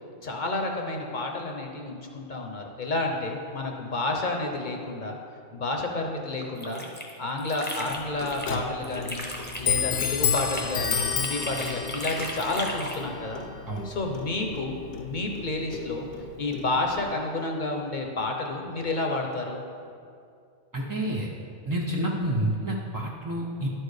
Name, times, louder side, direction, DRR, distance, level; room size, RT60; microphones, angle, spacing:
voice 1, 0.2-5.2 5.5-6.9 7.2-9.3 9.6-13.4 13.8-16.1 16.4-19.6, left 2 dB, 45° left, 2 dB, 0.8 m, -30 dB
sound 1, 6.4-8.6 8.8-13.0, left 1 dB, 10° left, 0.7 m, -36 dB
Clock, 7.9-17.1, left 6 dB, 80° left, 1.0 m, -32 dB
voice 2, 20.7-21.3 21.7-23.7, right 1 dB, 30° right, -2 dB, 0.3 m, -28 dB
11.0 x 4.6 x 4.8 m, 2.4 s
omnidirectional pair, 1.2 m